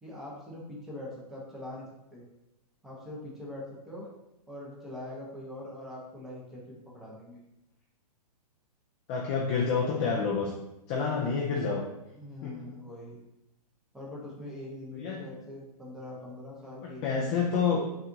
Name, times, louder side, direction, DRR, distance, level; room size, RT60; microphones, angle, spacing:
voice 1, 0.0-2.2 2.8-4.1 4.5-7.4 12.1-13.2 13.9-17.5, left 1 dB, ahead, -5 dB, 0.8 m, -43 dB
voice 2, 9.1-10.5 10.9-11.9 12.4-12.7 15.0-15.2 16.8-17.8, left 5 dB, 20° left, -2 dB, 0.3 m, -28 dB
5.5 x 2.4 x 2.7 m, 0.89 s
hypercardioid pair, 145°, 20 cm